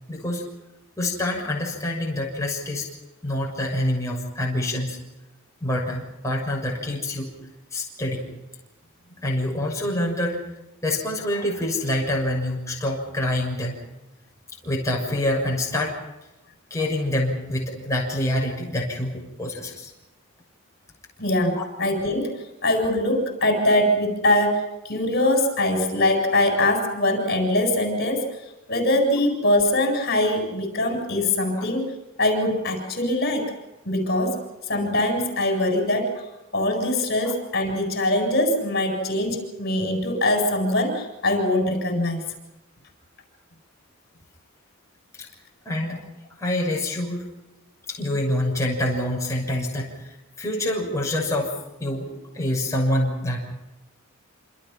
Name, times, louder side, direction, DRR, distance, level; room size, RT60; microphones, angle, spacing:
voice 1, 0.1-0.4 1.0-2.9 3.2-5.0 5.6-7.3 7.7-8.3 9.2-10.4 10.8-13.8 14.6-15.9 16.7-19.9 21.5-21.6 37.2-37.3 45.2-45.3 45.6-46.0 46.4-47.2 47.9-51.5 51.8-53.5, left 1 dB, 15° left, -2 dB, 6.5 m, -26 dB
voice 2, 21.2-22.3 22.6-28.2 28.7-31.9 32.2-33.5 33.9-34.4 34.7-36.2 36.5-42.2, left 1 dB, 50° left, 4 dB, 7.6 m, -22 dB
28.0 x 28.0 x 5.8 m, 0.99 s
head